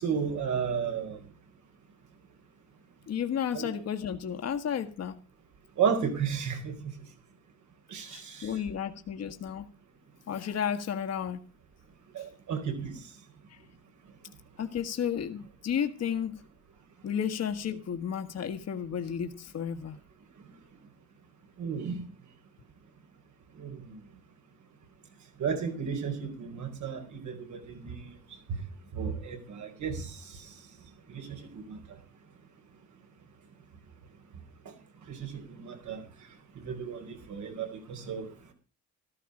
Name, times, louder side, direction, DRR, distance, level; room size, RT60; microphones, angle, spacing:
voice 1, 0.0-1.2 3.5-3.8 5.8-6.7 7.9-8.5 12.1-13.0 21.6-22.0 23.6-23.8 25.4-28.1 28.5-28.6 28.9-30.1 31.1-31.2 31.7-31.8 35.1-35.3 35.6-36.0 36.6-38.3, right 6 dB, 70° right, 4.6 m, -33 dB
voice 2, 3.1-5.2 8.1-9.7 10.3-11.4 12.2-12.3 13.5-13.6 14.6-16.4 17.0-20.0, left 8 dB, 55° left, 1.6 m, -33 dB
13.5 x 13.5 x 4.9 m
cardioid pair, 90°, 30 cm